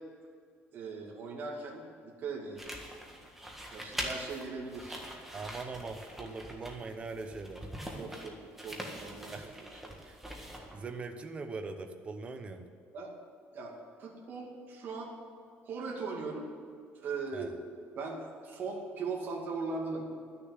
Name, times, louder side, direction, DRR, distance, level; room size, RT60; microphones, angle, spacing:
voice 1, 0.7-2.8 3.7-5.0 8.0-8.3 8.6-9.4 9.8-10.0 12.9-13.1 13.5-15.1 15.7-16.5 16.9-20.0, right 4 dB, 45° right, -2 dB, 2.3 m, -39 dB
sound 1, 2.6-10.9, equal, 5° right, 1.7 m, -43 dB
voice 2, 5.3-8.0 9.3-9.5 9.9-10.2 10.7-12.7 17.3-17.5, right 4 dB, 25° right, 6 dB, 1.0 m, -42 dB
12.0 x 6.8 x 9.8 m, 2.2 s
cardioid pair, 145°, 5 cm